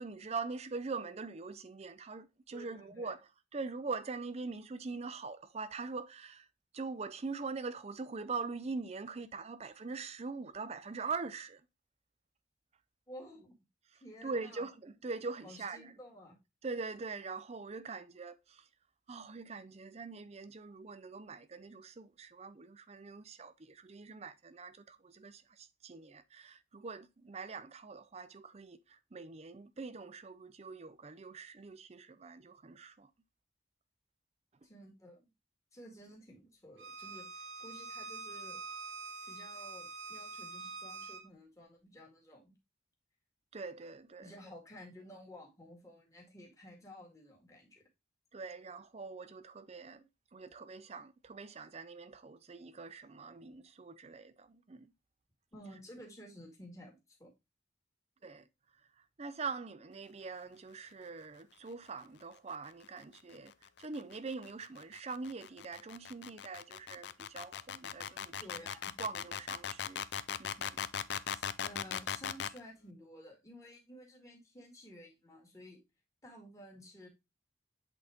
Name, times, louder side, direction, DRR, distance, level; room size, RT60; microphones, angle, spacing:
voice 1, 0.0-6.5 6.7-11.6 14.2-15.9 16.6-18.7 19.1-33.1 43.5-44.3 48.3-50.0 50.3-54.9 58.2-58.5 59.2-63.5 63.8-68.3 69.0-70.0 70.4-70.8, right 4 dB, 35° right, 0.5 m, -43 dB
voice 2, 2.5-3.1 13.1-13.5 14.0-14.7 15.4-16.4 34.6-35.3 35.7-38.6 39.3-42.5 44.2-47.8 55.5-57.3 68.3-68.9 71.3-75.8 76.2-77.1, equal, 15° left, 2.1 m, -53 dB
Bowed string instrument, 36.8-41.2, right 3 dB, 65° right, 1.0 m, -45 dB
sound 1, 63.3-72.6, left 8 dB, 60° left, 0.4 m, -39 dB
8.0 x 4.0 x 3.5 m
head